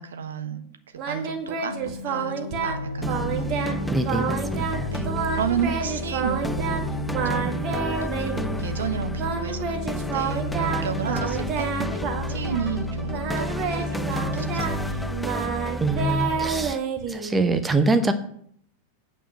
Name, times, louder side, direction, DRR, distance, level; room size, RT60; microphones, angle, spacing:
voice 1, 0.0-3.8 4.9-6.9 7.2-9.8 10.1-12.0 12.3-14.8, right 7 dB, 65° right, 8 dB, 1.1 m, -33 dB
Singing, 1.0-2.8 3.1-3.8 4.0-4.8 5.0-6.8 7.1-8.6 9.2-12.8 13.1-17.5, right 6 dB, 35° right, 1.6 m, -29 dB
sound 1, 1.7-15.3, left 2 dB, 80° left, 0.5 m, -34 dB
sound 2, 3.0-16.7, equal, 5° left, 0.4 m, -31 dB
voice 2, 3.9-4.9 15.8-16.8 17.1-18.1, right 2 dB, 10° right, 8 dB, 0.8 m, -24 dB
9.0 x 5.1 x 7.7 m, 0.65 s
figure-of-eight pair, 90°, 0 cm